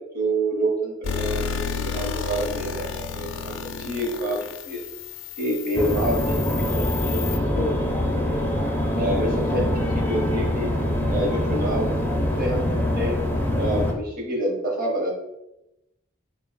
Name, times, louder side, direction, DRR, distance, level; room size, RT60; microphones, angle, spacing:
voice 1, 0.0-4.8 5.4-7.7 8.9-10.7 11.1-12.1 12.4-13.2 13.5-15.1, right 1 dB, 45° right, -1 dB, 1.0 m, -28 dB
sound 1, 1.0-7.4, left 6 dB, 80° left, 0.4 m, -32 dB
sound 2, 5.8-13.9, left 1 dB, 10° left, 0.5 m, -24 dB
3.8 x 2.3 x 3.9 m, 0.89 s
head